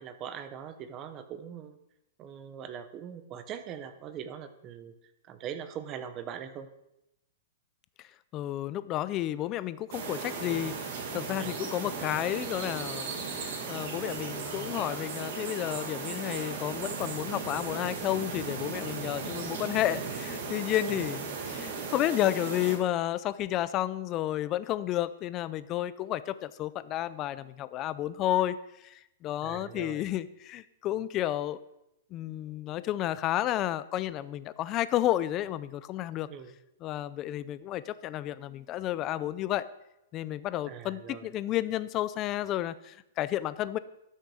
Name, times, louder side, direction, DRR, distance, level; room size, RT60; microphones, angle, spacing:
voice 1, 0.0-1.8 2.2-4.9 5.3-6.7 11.4-11.6 20.9-21.0 29.4-30.1 36.3-36.5 40.6-41.3, right 8 dB, 25° right, 10 dB, 0.8 m, -41 dB
voice 2, 8.3-10.8 11.1-28.6 28.8-31.6 32.1-36.3 36.8-39.7 40.1-43.8, left 13 dB, 25° left, 16 dB, 0.4 m, -31 dB
sound 1, 9.9-22.8, right 5 dB, 55° right, 2.3 m, -36 dB
12.5 x 6.5 x 4.9 m, 0.86 s
hypercardioid pair, 160°, 0 cm